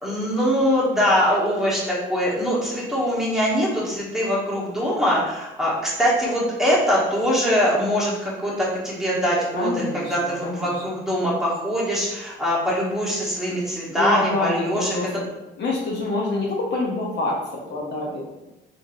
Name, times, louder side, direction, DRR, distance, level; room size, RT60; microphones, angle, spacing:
voice 1, 0.0-15.1, equal, ahead, -7 dB, 1.1 m, -23 dB
voice 2, 9.5-10.7 14.0-15.1 15.6-18.2, left 2 dB, 60° left, -3 dB, 0.8 m, -26 dB
3.5 x 2.6 x 2.5 m, 0.99 s
cardioid pair, 90°, 20 cm